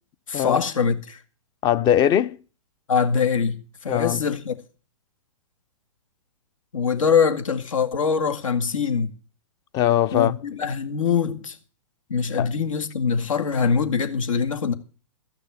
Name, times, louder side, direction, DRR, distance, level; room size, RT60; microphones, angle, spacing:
voice 1, 0.3-1.2 2.9-4.6 6.7-9.1 10.1-11.6 12.1-14.7, left 6 dB, 75° left, 2.1 m, -23 dB
voice 2, 1.6-2.4 3.9-4.2 9.7-10.4 12.4-12.5, left 11 dB, 25° left, 0.6 m, -20 dB
14.0 x 6.5 x 9.1 m
hypercardioid pair, 130°, 17 cm